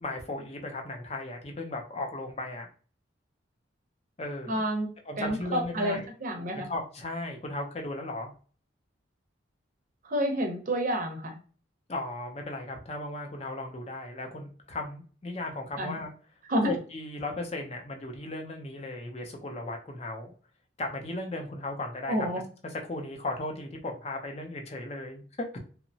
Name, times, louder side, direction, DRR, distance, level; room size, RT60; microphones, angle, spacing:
voice 1, 0.0-2.7 4.2-4.6 5.1-6.1 6.5-8.3 11.9-16.1 16.7-20.3 20.8-22.1 22.6-25.2 25.5-25.6, left 2 dB, 30° left, 3 dB, 0.5 m, -36 dB
voice 2, 4.5-4.9 5.2-6.7 10.0-11.4 15.8-16.0 16.5-16.7 22.1-22.4, equal, 45° right, 3 dB, 0.6 m, -29 dB
2.8 x 2.1 x 2.7 m, 0.40 s
head